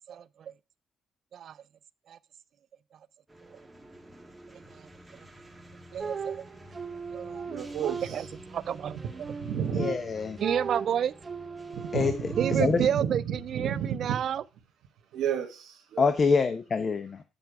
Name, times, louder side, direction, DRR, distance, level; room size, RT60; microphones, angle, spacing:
voice 1, 0.1-0.5 1.3-1.6 2.1-2.2 4.5-4.9 5.1-5.3 5.9-6.4 7.1-7.5 7.8-9.0 10.4-11.1 12.4-14.4, right 9 dB, 65° right, 0.4 m, -31 dB
sound 1, 3.3-13.0, right 1 dB, 10° right, 1.4 m, -50 dB
sound 2, 6.0-8.5 9.0-12.9, right 5 dB, 35° right, 0.8 m, -38 dB
voice 2, 7.5-8.2 9.3-9.9 11.7-12.0 12.3-14.2 15.1-16.1, right 9 dB, 85° right, 1.3 m, -31 dB
voice 3, 9.7-10.4 11.9-12.8 16.0-17.2, left 5 dB, 40° left, 0.8 m, -26 dB
8.0 x 5.8 x 4.6 m
cardioid pair, 90°, 0 cm